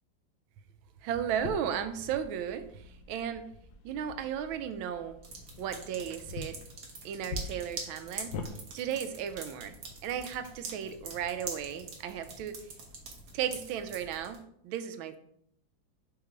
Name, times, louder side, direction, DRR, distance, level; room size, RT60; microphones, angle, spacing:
voice 1, 1.0-3.5 3.8-5.2 5.6-6.6 7.0-8.3 8.7-9.7 10.0-12.6 13.3-15.2, right 9 dB, 90° right, 9 dB, 1.4 m, -35 dB
sound 1, 1.4-8.5, left 3 dB, 65° left, 1.1 m, -45 dB
sound 2, 5.2-14.4, right 3 dB, 55° right, 1.5 m, -45 dB
5.6 x 3.7 x 4.5 m, 0.71 s
omnidirectional pair, 2.1 m